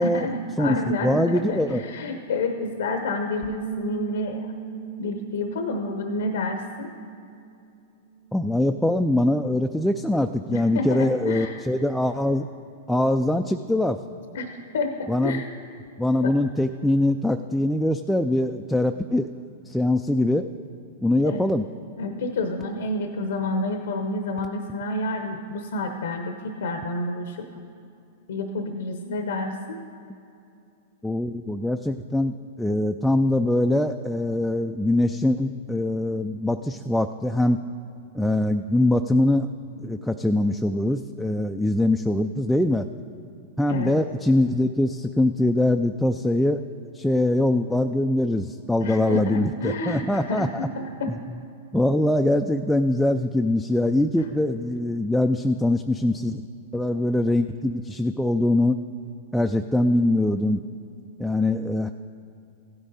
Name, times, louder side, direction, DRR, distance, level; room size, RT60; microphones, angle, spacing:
voice 1, 0.0-4.5 5.0-6.9 10.5-11.6 14.3-15.5 16.2-16.3 21.2-21.5 22.0-27.5 28.3-29.8 43.7-44.0 48.8-51.2, left 2 dB, 80° left, 6 dB, 0.8 m, -29 dB
voice 2, 1.0-1.8 8.3-12.4 12.9-14.0 15.1-15.4 16.0-19.3 19.7-20.5 21.0-21.7 31.0-37.6 38.1-39.5 39.8-42.9 43.6-46.6 46.9-50.5 51.1-51.2 51.7-56.4 56.7-58.8 59.3-60.6 61.2-61.9, left 1 dB, 5° left, 5 dB, 0.3 m, -23 dB
Bass guitar, 3.4-7.8 8.1-9.7, right 12 dB, 20° right, 1.0 m, -39 dB
15.5 x 9.7 x 4.1 m, 2.6 s
hypercardioid pair, 120°, 0 cm